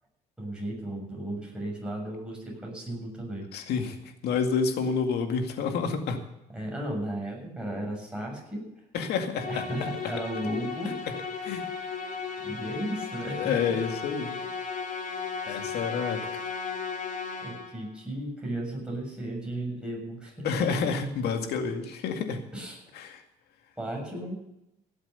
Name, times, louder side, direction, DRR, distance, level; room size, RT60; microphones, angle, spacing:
voice 1, 0.4-3.5 6.5-8.7 9.5-10.9 12.4-13.4 15.4-15.6 17.4-20.7 22.5-22.8 23.8-24.4, right 1 dB, 5° right, -2 dB, 7.0 m, -35 dB
voice 2, 3.5-6.2 8.9-10.1 11.1-11.2 11.4-11.7 13.3-14.4 14.8-14.9 15.5-16.4 20.4-22.5 22.9-23.2, left 5 dB, 75° left, 5 dB, 2.2 m, -29 dB
Musical instrument, 9.3-17.9, left 5 dB, 50° left, 3.4 m, -35 dB
17.0 x 7.8 x 7.0 m, 0.84 s
cardioid pair, 110°, 17 cm